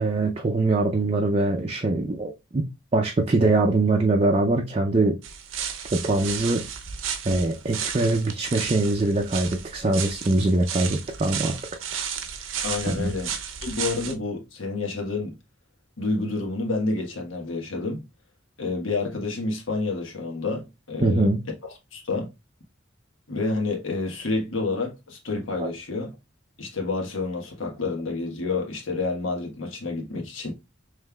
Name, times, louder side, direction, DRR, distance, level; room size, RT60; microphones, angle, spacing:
voice 1, 0.0-5.2 5.9-6.6 7.3-11.6 12.9-13.1 21.0-21.4 25.6-25.7, right 2 dB, 30° right, 0.4 m, -23 dB
sound 1, 5.2-14.1, right 7 dB, 90° right, 0.7 m, -33 dB
voice 2, 12.6-13.3 13.6-15.4 16.0-18.0 18.6-21.3 21.9-22.3 23.3-26.1 26.6-30.5, left 3 dB, 85° left, 1.3 m, -29 dB
5.3 x 3.2 x 2.2 m
head